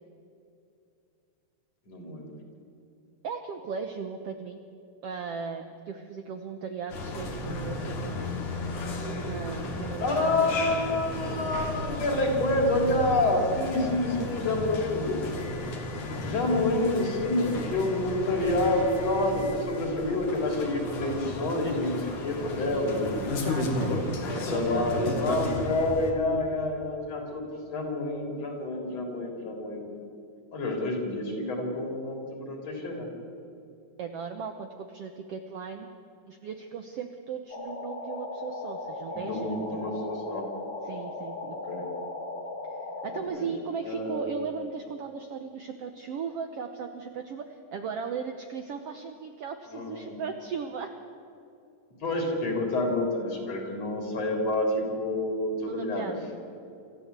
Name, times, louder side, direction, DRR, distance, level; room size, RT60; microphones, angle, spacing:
voice 1, 1.9-2.3 10.0-15.3 16.2-23.2 24.3-29.9 30.5-33.1 39.1-40.4 41.7-41.8 43.1-43.5 43.8-44.3 49.7-50.1 52.0-56.1, left 2 dB, 50° left, 2 dB, 4.6 m, -28 dB
voice 2, 3.2-4.6 5.0-8.3 9.2-10.2 22.6-25.0 34.0-35.9 36.3-39.5 40.9-41.6 43.0-50.9 55.7-56.3, right 6 dB, 65° right, 6 dB, 1.5 m, -37 dB
sound 1, 6.9-26.1, left 2 dB, 65° left, 3.7 m, -34 dB
sound 2, 37.5-43.2, left 2 dB, 35° left, 2.4 m, -37 dB
26.0 x 14.0 x 8.3 m, 2.7 s
omnidirectional pair, 3.8 m